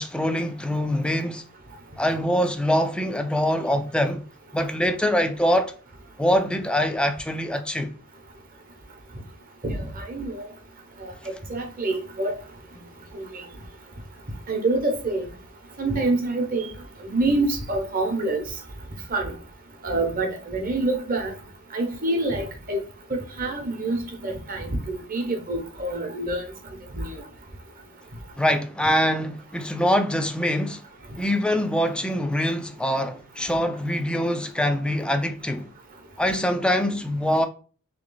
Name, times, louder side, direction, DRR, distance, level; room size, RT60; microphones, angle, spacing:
voice 1, 0.0-1.4 2.0-4.2 4.5-5.7 6.2-7.9 28.4-30.8 31.2-35.7 36.2-37.5, equal, 5° left, 0.3 m, -24 dB
voice 2, 9.6-10.4 11.0-11.1 11.5-12.3 13.1-13.4 14.5-15.3 15.8-16.7 17.0-18.4 19.1-19.3 19.8-21.3 21.7-22.8 23.1-26.4 26.9-27.2, right 2 dB, 40° right, 1.0 m, -26 dB
3.3 x 3.1 x 3.9 m
head